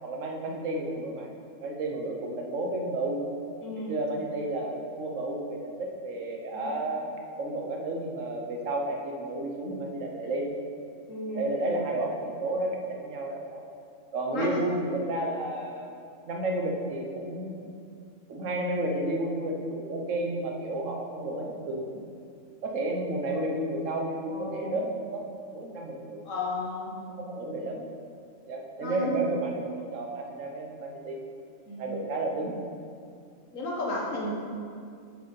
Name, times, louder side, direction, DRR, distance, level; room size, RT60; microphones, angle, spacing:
voice 1, 0.0-1.3 1.6-3.2 3.9-7.0 7.4-10.5 11.3-13.6 14.1-15.9 16.3-17.7 18.3-22.0 22.6-25.2 25.5-26.2 27.2-27.9 28.5-31.2 31.8-32.5, right 1 dB, 75° right, 1 dB, 1.4 m, -32 dB
voice 2, 3.6-4.0 6.5-6.7 11.1-11.5 14.3-14.5 24.3-24.8 26.2-26.9 28.8-29.2 31.7-31.9 33.5-34.5, left 2 dB, 80° left, -3 dB, 1.8 m, -33 dB
6.6 x 6.5 x 5.3 m, 2.3 s
omnidirectional pair, 1.3 m